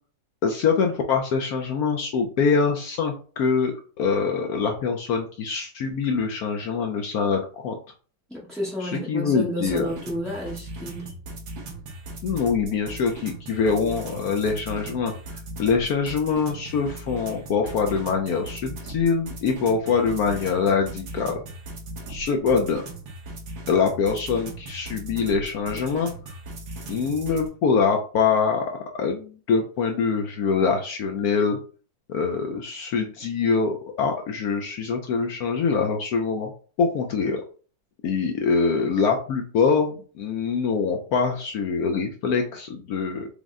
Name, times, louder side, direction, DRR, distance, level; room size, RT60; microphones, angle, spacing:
voice 1, 0.4-7.8 8.8-9.9 12.2-15.1 15.6-21.4 22.1-22.8 23.7-26.1 26.9-28.7 28.9-31.6 32.1-36.5 36.8-37.4 38.0-43.3, left 5 dB, 70° left, 3 dB, 0.9 m, -24 dB
voice 2, 8.3-11.1, equal, ahead, -6 dB, 0.6 m, -31 dB
sound 1, 9.7-27.5, right 2 dB, 85° right, 1.8 m, -38 dB
5.1 x 2.1 x 3.6 m, 0.40 s
omnidirectional pair, 2.0 m